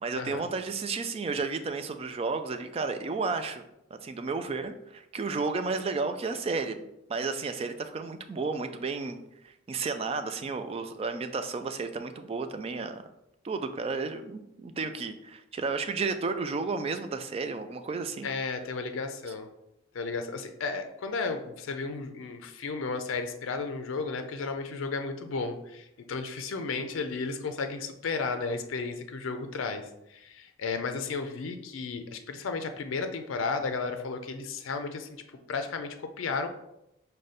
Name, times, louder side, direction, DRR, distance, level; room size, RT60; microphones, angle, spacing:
voice 1, 0.0-3.6 3.9-13.0 13.4-18.3, right 4 dB, 30° right, 8 dB, 0.3 m, -32 dB
voice 2, 18.2-19.5 19.9-35.1 35.5-36.5, left 4 dB, 85° left, 7 dB, 0.4 m, -33 dB
4.9 x 2.2 x 4.1 m, 0.84 s
head